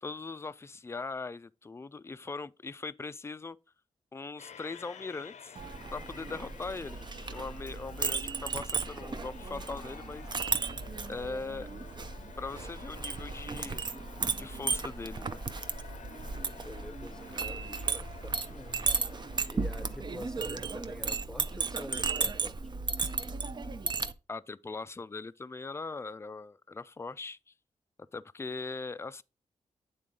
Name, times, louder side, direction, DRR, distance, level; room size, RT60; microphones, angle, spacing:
voice 1, 0.0-3.6 4.1-5.6 5.9-7.0 7.3-10.3 11.1-11.7 12.4-13.8 14.4-15.4 24.3-27.4 28.1-29.2, left 3 dB, 20° left, 0.3 m, -40 dB
sound 1, 4.4-20.6, left 7 dB, 70° left, 0.6 m, -52 dB
Chink clink, 5.6-24.1, right 4 dB, 40° right, 0.5 m, -35 dB
voice 2, 16.6-18.9 19.5-22.6, left 1 dB, 5° left, 0.7 m, -46 dB
8.5 x 3.7 x 3.8 m
cardioid pair, 60°, 12 cm